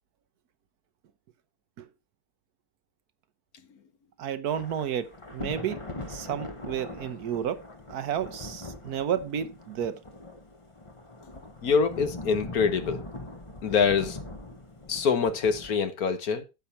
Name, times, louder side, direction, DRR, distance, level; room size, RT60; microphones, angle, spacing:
voice 1, 4.2-7.6 7.9-10.0, right 9 dB, 75° right, 1.3 m, -31 dB
Thunder / Rain, 4.5-15.8, left 2 dB, 20° left, 1.0 m, -41 dB
voice 2, 11.6-13.0 13.6-14.2 14.9-16.4, left 5 dB, 65° left, 1.6 m, -25 dB
9.6 x 7.0 x 4.3 m
omnidirectional pair, 1.7 m